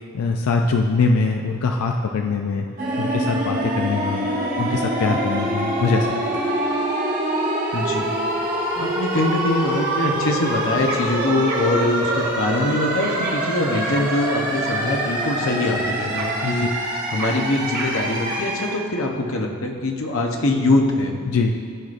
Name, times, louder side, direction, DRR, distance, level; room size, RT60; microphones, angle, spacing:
voice 1, 0.1-2.7 3.0-4.3 4.6-6.5 16.4-16.7 21.3-21.5, left 4 dB, 85° left, 3 dB, 0.4 m, -22 dB
sound 1, 2.8-18.8, right 1 dB, 40° right, 1.2 m, -25 dB
voice 2, 7.7-8.1 8.8-16.7 17.1-21.1, left 2 dB, 65° left, 2 dB, 0.8 m, -23 dB
sound 2, 7.7-18.4, right 2 dB, 90° right, 1.6 m, -36 dB
13.5 x 4.9 x 2.5 m, 2.4 s
head